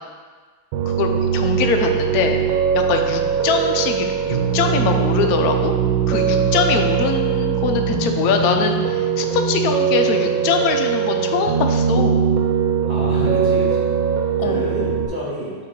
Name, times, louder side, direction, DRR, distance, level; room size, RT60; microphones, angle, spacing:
Piano, 0.7-15.1, right 7 dB, 85° right, 1.4 m, -20 dB
voice 1, 0.9-2.4 2.7-5.7 6.1-12.3 14.4-14.6, left 6 dB, 70° left, 4 dB, 0.9 m, -22 dB
voice 2, 12.9-13.9 14.4-15.5, equal, 10° left, -8 dB, 1.5 m, -28 dB
7.7 x 3.0 x 4.5 m, 1.5 s
omnidirectional pair, 2.1 m